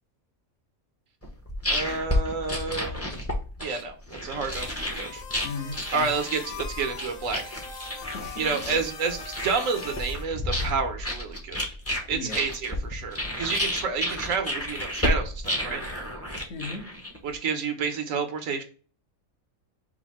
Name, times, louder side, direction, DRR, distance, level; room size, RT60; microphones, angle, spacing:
sound 1, 1.2-17.3, left 1 dB, 15° left, 0.7 m, -31 dB
voice 1, 1.7-3.1 3.6-4.0 4.2-5.2 5.9-7.5 8.4-11.7 12.1-15.8 17.2-18.6, right 5 dB, 70° right, 6 dB, 1.2 m, -30 dB
sound 2, 4.5-10.2, left 5 dB, 75° left, 1.3 m, -41 dB
voice 2, 5.4-6.1 8.1-8.7 12.1-12.4 16.5-16.9, left 3 dB, 60° left, 0 dB, 1.5 m, -36 dB
4.8 x 2.6 x 4.2 m, 0.39 s
omnidirectional pair, 1.4 m